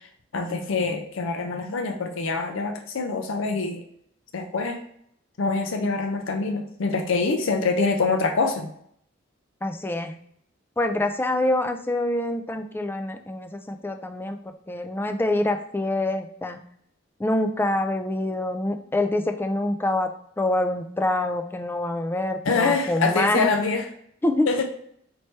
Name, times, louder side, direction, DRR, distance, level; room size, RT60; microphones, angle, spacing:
voice 1, 0.3-3.8 4.3-4.8 5.4-8.7 22.4-23.8 24.4-24.6, left 4 dB, 70° left, 5 dB, 0.5 m, -25 dB
voice 2, 9.6-10.1 10.8-14.4 14.7-16.6 17.2-23.5 24.2-24.5, left 1 dB, 10° left, 7 dB, 0.3 m, -25 dB
4.3 x 3.1 x 3.2 m, 0.67 s
head